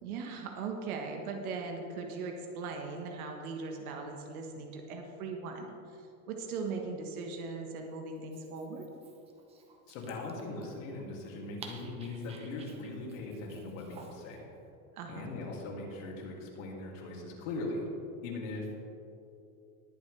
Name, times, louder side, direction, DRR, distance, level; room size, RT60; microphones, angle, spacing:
voice 1, 0.0-8.9 14.9-15.3, right 4 dB, 80° right, 3 dB, 1.5 m, -39 dB
Dog, 8.2-14.4, right 4 dB, 15° right, 0.7 m, -53 dB
voice 2, 9.9-14.5 15.1-17.9 18.2-18.8, left 2 dB, 60° left, -1 dB, 2.7 m, -40 dB
20.0 x 7.6 x 3.4 m, 2.7 s
supercardioid pair, 165°, 43 cm